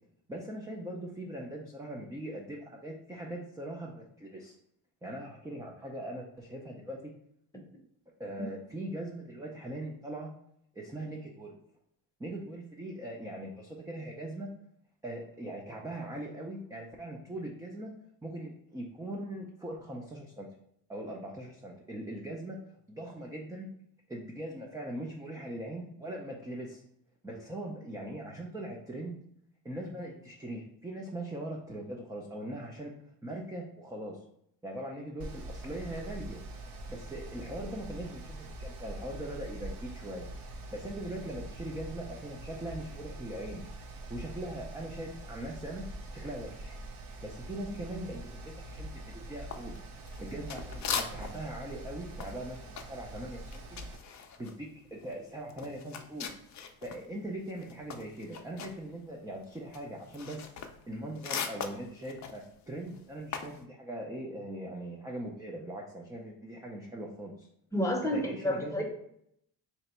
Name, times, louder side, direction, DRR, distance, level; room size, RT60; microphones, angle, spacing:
voice 1, 0.3-4.6 5.0-7.1 8.2-10.3 10.7-11.6 12.2-14.5 15.0-17.9 18.2-20.5 20.9-22.6 22.9-23.7 24.1-26.8 27.2-29.2 29.6-32.9 33.2-34.2 34.6-36.4 36.9-40.3 40.7-43.6 44.1-45.8 46.1-46.7 47.2-49.8 50.2-53.6 54.2-56.3 56.8-60.5 60.9-67.5 68.1-68.8, right 1 dB, 10° right, -1 dB, 0.4 m, -41 dB
Mechanical fan, 35.2-54.0, right 2 dB, 55° right, 0.8 m, -44 dB
sound 1, 49.5-51.5 51.8-57.1 57.4-63.6, left 6 dB, 40° left, 0.5 m, -40 dB
voice 2, 67.7-68.8, left 1 dB, 5° left, 0 dB, 0.8 m, -30 dB
3.3 x 2.9 x 4.2 m, 0.72 s
cardioid pair, 100°, 44 cm